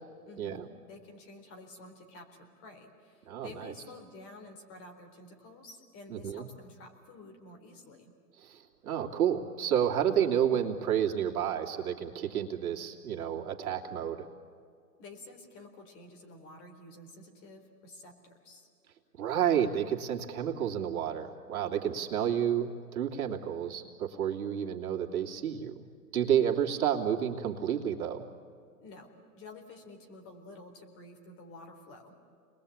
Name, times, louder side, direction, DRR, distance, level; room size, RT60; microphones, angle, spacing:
voice 1, 0.3-8.1 15.0-18.7 28.8-32.2, left 2 dB, 25° left, 4 dB, 4.0 m, -50 dB
voice 2, 3.3-3.7 6.1-6.5 8.4-14.3 19.2-25.8 26.1-28.2, right 9 dB, 60° right, 0 dB, 3.0 m, -30 dB
29.5 x 21.0 x 8.7 m, 2.4 s
hypercardioid pair, 140°, 48 cm